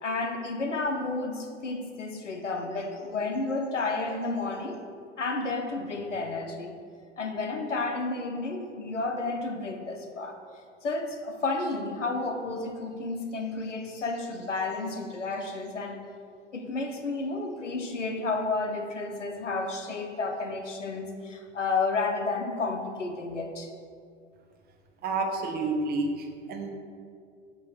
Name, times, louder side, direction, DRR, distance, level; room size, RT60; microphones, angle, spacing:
voice 1, 0.0-4.8 5.2-6.8 7.2-10.4 10.8-16.0 16.5-23.7, left 3 dB, 85° left, 5 dB, 0.7 m, -31 dB
voice 2, 25.0-26.7, right 3 dB, 25° right, 3 dB, 0.7 m, -29 dB
7.5 x 3.1 x 5.5 m, 2.3 s
figure-of-eight pair, 85°, 35 cm